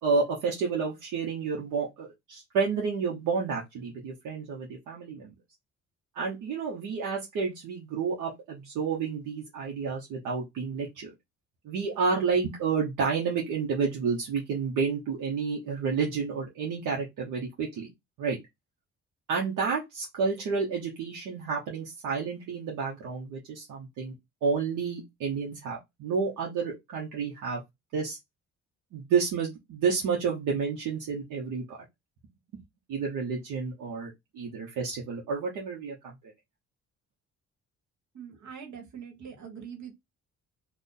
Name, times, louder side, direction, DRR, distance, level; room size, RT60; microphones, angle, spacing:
voice 1, 0.0-5.3 6.1-11.1 11.6-17.9 18.2-18.4 19.3-24.1 24.4-27.6 27.9-28.2 28.9-31.8 32.9-36.3, right 5 dB, 85° right, 1.0 m, -30 dB
voice 2, 38.1-39.9, right 7 dB, 70° right, 1.5 m, -43 dB
2.6 x 2.4 x 3.7 m
cardioid pair, 90°, 30 cm